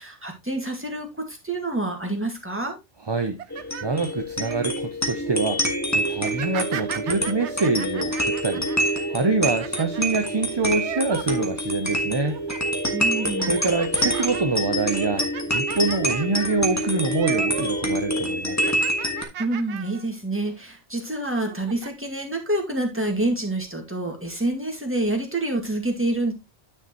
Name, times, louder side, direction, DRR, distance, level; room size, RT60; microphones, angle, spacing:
voice 1, 0.0-2.8 12.9-13.6 19.4-26.3, right 2 dB, 10° right, 2.1 m, -27 dB
voice 2, 3.1-3.4 3.8-5.6 5.9-12.4 13.5-15.3 15.5-18.7, right 3 dB, 30° right, 0.6 m, -25 dB
sound 1, 3.2-4.6 5.1-5.4 6.1-11.9 12.2-12.7 13.1-17.9 18.1-20.1 20.5-20.6 21.3-21.9, right 9 dB, 75° right, 1.0 m, -38 dB
sound 2, 3.5-19.2, equal, 15° left, 1.7 m, -26 dB
9.8 x 6.6 x 3.0 m
omnidirectional pair, 1.2 m